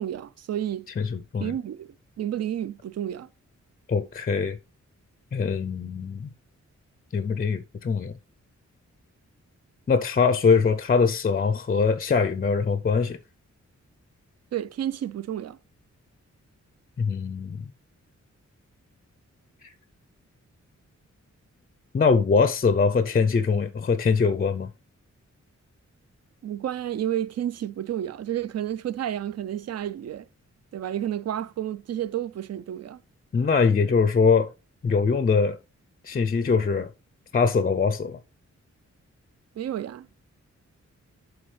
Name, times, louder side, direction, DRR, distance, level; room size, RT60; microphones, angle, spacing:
voice 1, 0.0-0.9 1.4-3.3 14.5-15.6 26.4-30.3 30.7-33.0 39.6-40.1, right 11 dB, 60° right, 0.4 m, -31 dB
voice 2, 1.0-1.6 3.9-4.6 5.3-6.3 7.1-8.1 9.9-13.2 17.0-17.7 21.9-24.7 33.3-34.5 34.8-35.6 36.0-36.9 37.3-38.2, left 5 dB, 30° left, 0.4 m, -22 dB
11.0 x 4.0 x 3.2 m
wide cardioid pair, 140°, 29 cm